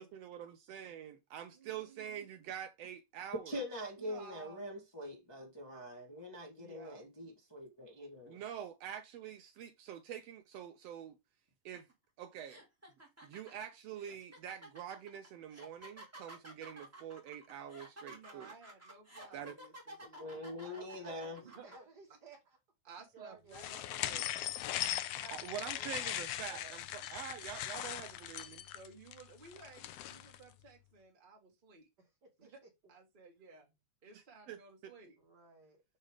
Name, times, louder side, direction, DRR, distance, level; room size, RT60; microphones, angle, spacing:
voice 1, 0.0-3.6 8.3-11.2 11.6-11.9 12.2-12.6 13.2-18.5 19.3-19.6 25.3-28.7 34.1-34.9, right 9 dB, 75° right, 1.6 m, -46 dB
voice 2, 1.5-2.3 4.0-4.7 6.6-7.0 18.1-20.5 21.4-21.7 22.8-24.4 25.1-26.3 28.7-31.9 32.4-32.5 32.9-33.7 34.0-35.2, right 4 dB, 25° right, 1.1 m, -56 dB
voice 3, 3.4-8.4 20.2-21.4, left 1 dB, 30° left, 0.4 m, -44 dB
sound 1, 11.7-11.9 12.4-21.7, right 1 dB, 5° right, 1.3 m, -53 dB
voice 4, 20.6-22.6 23.1-24.4 25.6-26.1 26.4-26.8 32.0-32.1 32.4-32.5 35.2-35.8, right 3 dB, 45° right, 1.5 m, -56 dB
sound 2, 23.5-30.4, left 13 dB, 80° left, 1.4 m, -40 dB
6.5 x 3.2 x 4.9 m
omnidirectional pair, 3.3 m